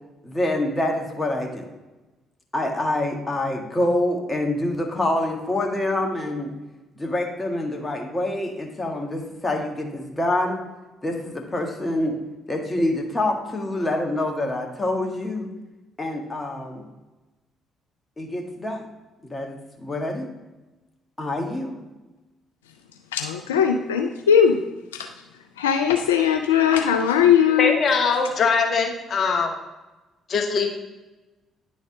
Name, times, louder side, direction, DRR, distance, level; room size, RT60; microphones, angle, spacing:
voice 1, 0.2-1.6 2.5-6.5 6.9-10.6 11.0-12.2 12.5-15.5 16.0-16.8 18.2-18.8 19.2-20.3 21.2-21.8, left 1 dB, 20° left, 1 dB, 1.6 m, -26 dB
voice 2, 23.1-24.6 24.9-25.1 25.6-27.8, left 8 dB, 85° left, 4 dB, 0.3 m, -19 dB
voice 3, 27.6-29.5 30.3-30.7, left 5 dB, 50° left, 3 dB, 0.9 m, -21 dB
10.0 x 4.1 x 3.7 m, 1.1 s
figure-of-eight pair, 45°, 0 cm